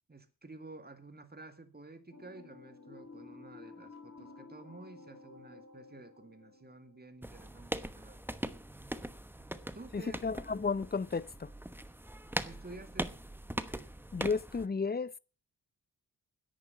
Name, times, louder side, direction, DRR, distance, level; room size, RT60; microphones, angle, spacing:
voice 1, 0.1-8.4 9.3-10.3 12.4-13.2, right 2 dB, 25° right, 2.1 m, -51 dB
sound 1, 2.1-7.4, left 3 dB, 40° left, 3.7 m, -53 dB
sound 2, 7.2-14.7, right 1 dB, 5° right, 1.0 m, -41 dB
voice 2, 9.9-11.5 14.1-15.2, left 4 dB, 25° left, 0.7 m, -33 dB
10.5 x 8.7 x 8.4 m
cardioid pair, 75°, 39 cm